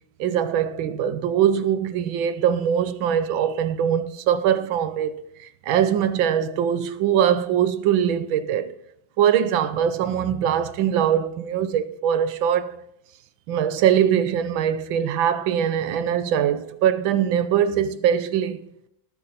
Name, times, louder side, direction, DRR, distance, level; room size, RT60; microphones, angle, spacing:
voice 1, 0.2-8.7 9.2-12.7 13.5-18.6, right 9 dB, 90° right, 1.6 m, -22 dB
18.5 x 7.1 x 4.1 m
omnidirectional pair, 2.1 m